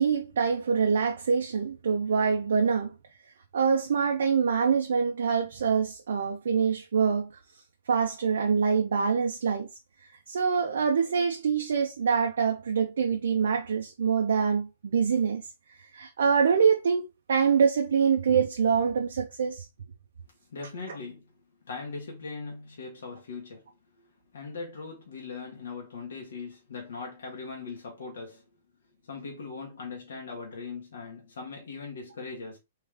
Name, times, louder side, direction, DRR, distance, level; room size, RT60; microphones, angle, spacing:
voice 1, 0.0-2.9 3.5-7.3 7.9-9.7 10.3-15.4 15.9-19.7, right 6 dB, 75° right, 0.7 m, -25 dB
voice 2, 20.5-21.3 21.6-23.7 24.0-28.4 29.0-32.6, left 4 dB, 75° left, 1.6 m, -40 dB
3.7 x 3.3 x 3.6 m
hypercardioid pair, 120°, 0 cm